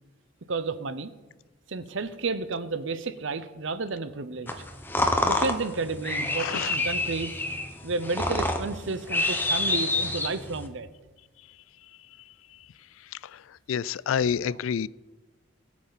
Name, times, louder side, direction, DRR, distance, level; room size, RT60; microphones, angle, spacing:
voice 1, 0.5-1.1 1.7-4.5 5.2-7.3 7.8-10.9, right 3 dB, 65° right, 0.8 m, -31 dB
sound 1, 4.5-10.7, left 2 dB, 10° left, 0.9 m, -28 dB
voice 2, 6.4-6.8 13.1-13.4 13.7-14.9, left 7 dB, 75° left, 0.3 m, -28 dB
21.5 x 8.4 x 4.1 m
head